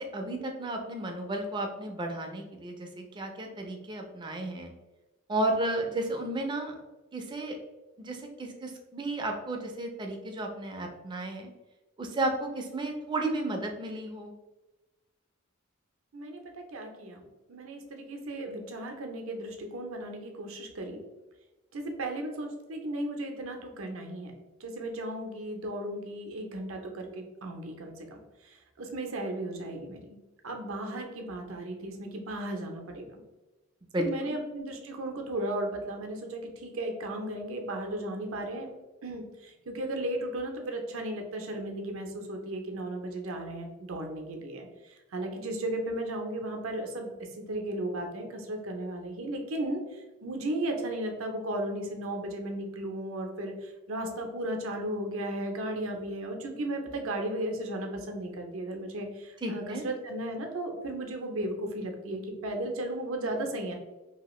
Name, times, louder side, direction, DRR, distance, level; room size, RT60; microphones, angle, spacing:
voice 1, 0.0-4.7 5.3-6.7 7.1-7.6 8.0-11.5 12.0-14.3 33.9-34.4 59.4-59.9, right 2 dB, 20° right, 3 dB, 0.4 m, -33 dB
voice 2, 16.1-21.0 21.7-24.3 24.6-28.0 28.4-30.2 30.4-33.2 34.0-38.7 39.0-47.1 47.5-63.8, right 1 dB, 70° right, 3 dB, 0.6 m, -35 dB
2.8 x 2.4 x 3.0 m, 1.1 s
head